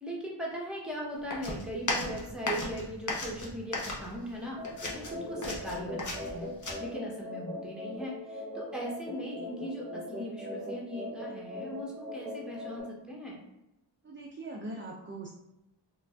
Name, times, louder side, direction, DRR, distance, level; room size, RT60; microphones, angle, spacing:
voice 1, 0.0-4.6 4.9-6.5 6.8-13.4, equal, ahead, -3 dB, 0.8 m, -39 dB
sound 1, 1.3-4.4 4.6-6.7, left 2 dB, 40° left, 0.7 m, -35 dB
sound 2, 4.6-12.8, left 1 dB, 15° left, 1.2 m, -40 dB
voice 2, 14.0-15.3, right 2 dB, 30° right, -2 dB, 0.4 m, -41 dB
2.4 x 2.2 x 3.2 m, 0.89 s
wide cardioid pair, 50°, 45 cm